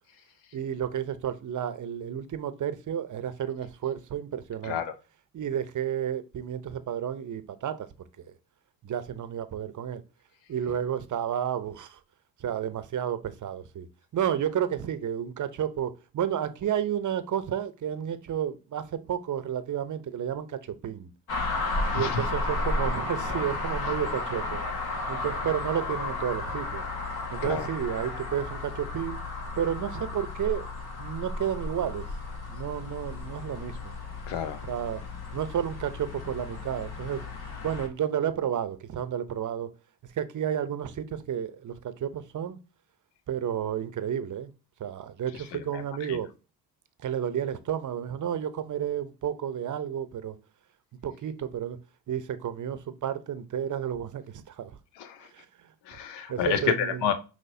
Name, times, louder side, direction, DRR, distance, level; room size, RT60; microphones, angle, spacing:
voice 1, 0.5-4.8 5.3-7.9 8.2-8.3 8.8-10.0 10.5-12.0 12.4-13.9 14.1-21.1 21.9-24.6 25.1-26.8 27.3-29.2 29.6-30.7 31.0-32.1 32.4-34.0 34.6-35.0 35.3-37.3 37.6-39.7 40.0-42.6 43.3-44.5 44.8-46.3 47.0-50.3 51.0-51.8 52.1-54.7 55.3-55.7 56.3-57.1, right 9 dB, 45° right, 0.8 m, -31 dB
voice 2, 4.6-4.9 21.8-22.2 27.4-27.7 34.3-34.6 45.5-45.8 46.1-46.2 55.0-55.3 55.9-57.1, left 7 dB, 85° left, 0.7 m, -30 dB
sound 1, 21.3-37.9, left 3 dB, 65° left, 1.7 m, -33 dB
5.7 x 3.0 x 2.7 m
supercardioid pair, 60°, 41 cm